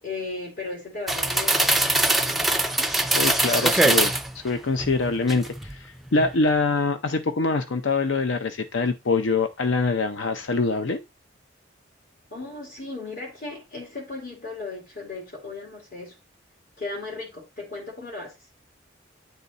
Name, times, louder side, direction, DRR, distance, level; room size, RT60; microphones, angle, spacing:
voice 1, 0.0-2.6 3.0-3.5 12.3-16.2 16.8-18.6, left 3 dB, 50° left, 2.3 m, -36 dB
sound 1, 1.1-4.3 4.8-5.7 6.1-6.3, right 2 dB, ahead, 0.4 m, -22 dB
voice 2, 3.2-11.0, left 3 dB, 75° left, 0.6 m, -24 dB
9.2 x 4.0 x 4.0 m
head